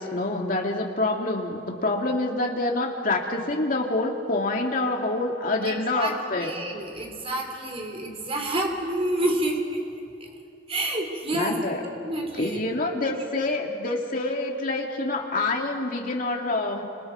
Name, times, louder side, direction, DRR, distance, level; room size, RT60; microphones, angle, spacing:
voice 1, 0.0-6.5 11.3-11.8 12.4-16.8, left 2 dB, 50° left, 0 dB, 2.5 m, -27 dB
voice 2, 5.6-9.8 10.7-11.6 12.0-12.6 13.0-13.2, right 1 dB, 35° right, 2 dB, 3.3 m, -29 dB
29.5 x 26.5 x 4.7 m, 2.7 s
head